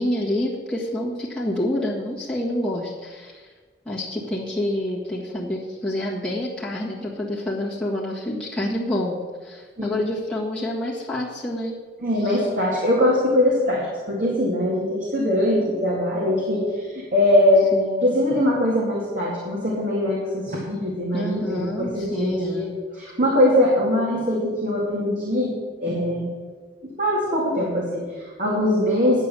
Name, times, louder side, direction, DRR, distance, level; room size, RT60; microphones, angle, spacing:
voice 1, 0.0-3.5 3.8-11.8 12.2-12.5 17.7-18.1 21.1-22.7, left 1 dB, 5° left, -7 dB, 1.6 m, -28 dB
voice 2, 12.0-17.7 18.0-22.7 22.9-25.5 25.8-26.3 26.8-29.2, left 1 dB, 45° right, -4 dB, 2.3 m, -22 dB
9.8 x 8.1 x 6.9 m, 1.4 s
head